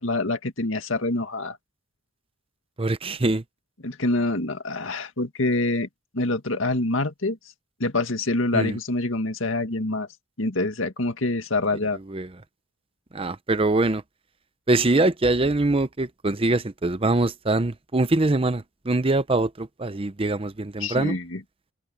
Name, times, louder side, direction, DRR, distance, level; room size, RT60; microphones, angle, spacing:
voice 1, 0.0-1.6 3.8-5.9 6.1-7.4 7.8-10.1 10.4-12.0 20.8-21.4, left 2 dB, 90° left, 2.0 m, -26 dB
voice 2, 2.8-3.4 8.5-8.8 11.9-12.3 13.1-14.0 14.7-21.2, right 2 dB, 30° right, 0.7 m, -23 dB
head